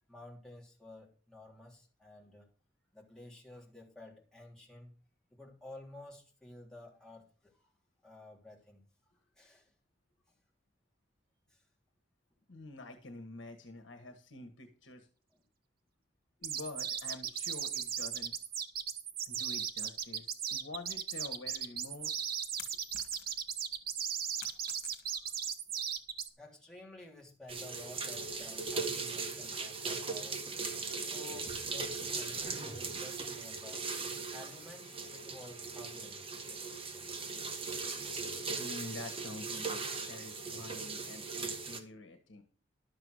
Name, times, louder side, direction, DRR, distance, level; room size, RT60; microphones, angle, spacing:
voice 1, 0.1-2.5 2.9-4.9 5.3-7.2 7.5-7.7 8.0-8.8 9.3-9.7 11.5-11.6 24.4-24.5 25.1-25.2 25.7-25.9 26.4-30.4 31.0-33.8 34.3-36.2, left 2 dB, 5° left, -2 dB, 3.4 m, -52 dB
voice 2, 12.5-15.1 16.4-18.4 19.3-22.1 38.6-42.4, left 2 dB, 75° left, 6 dB, 1.5 m, -47 dB
sound 1, 16.4-26.3, right 8 dB, 50° right, 1.1 m, -37 dB
sound 2, 22.0-23.6 23.9-25.4, left 8 dB, 55° left, 2.3 m, -50 dB
sound 3, 27.5-41.8, right 4 dB, 30° right, 1.6 m, -39 dB
12.0 x 6.9 x 6.4 m, 0.39 s
head